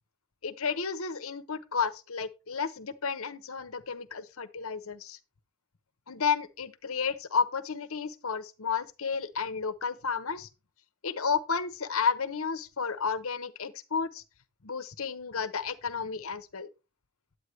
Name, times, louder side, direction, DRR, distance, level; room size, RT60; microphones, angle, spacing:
voice 1, 0.4-5.2 6.1-10.5 11.0-14.2 14.6-16.7, left 5 dB, 70° left, 0.9 m, -32 dB
9.9 x 8.5 x 3.2 m
head